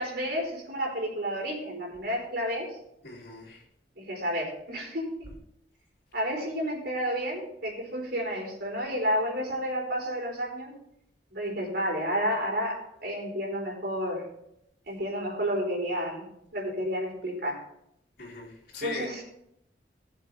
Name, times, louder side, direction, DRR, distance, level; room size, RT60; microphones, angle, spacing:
voice 1, 0.0-2.7 4.0-5.1 6.1-10.7 11.3-14.2 14.9-16.2 16.5-17.6 18.8-19.2, equal, 65° right, -1 dB, 4.3 m, -31 dB
voice 2, 3.0-3.6 18.2-19.1, left 3 dB, 55° left, -7 dB, 2.9 m, -40 dB
16.5 x 7.3 x 3.4 m, 0.76 s
head